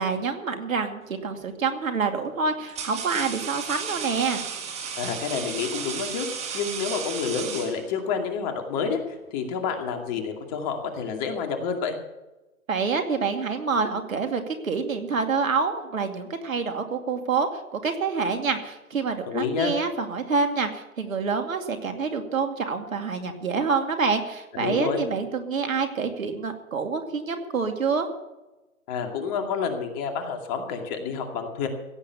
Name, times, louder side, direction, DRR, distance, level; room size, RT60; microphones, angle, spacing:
voice 1, 0.0-4.5 12.7-28.1, right 5 dB, 75° right, 6 dB, 2.5 m, -27 dB
sound 1, 1.1-1.4 2.2-8.2, right 6 dB, 15° right, 1.8 m, -34 dB
voice 2, 5.0-6.3 6.5-9.0 9.3-12.0 19.3-19.7 24.5-25.0 28.9-31.7, left 6 dB, 30° left, 4 dB, 2.4 m, -29 dB
16.0 x 8.6 x 7.0 m, 1.0 s
hypercardioid pair, 135°, 41 cm